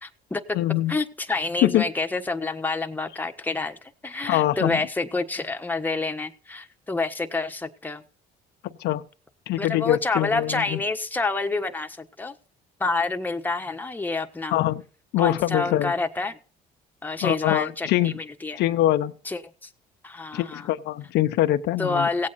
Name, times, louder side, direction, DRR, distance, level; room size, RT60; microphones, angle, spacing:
voice 1, 0.0-0.6 0.9-8.0 9.6-12.3 12.8-14.6 15.2-16.4 17.0-18.6 19.2-19.7 20.0-20.7 21.8-22.3, left 3 dB, 10° left, 5 dB, 1.3 m, -28 dB
voice 2, 0.5-0.9 1.6-1.9 4.2-4.8 8.8-9.0 9.5-10.8 14.5-14.8 15.1-15.9 17.2-18.1 18.6-19.1 20.3-22.1, left 14 dB, 80° left, 9 dB, 0.9 m, -23 dB
17.0 x 8.5 x 4.2 m, 0.38 s
cardioid pair, 110°, 17 cm